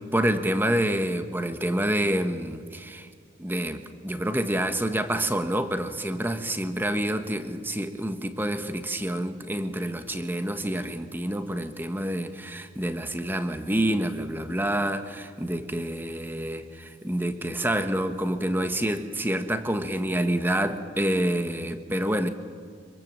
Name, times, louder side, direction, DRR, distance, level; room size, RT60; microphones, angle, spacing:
voice 1, 0.1-3.1 3.4-22.3, right 1 dB, 10° right, 8 dB, 1.3 m, -27 dB
25.5 x 23.0 x 7.6 m, 2.1 s
head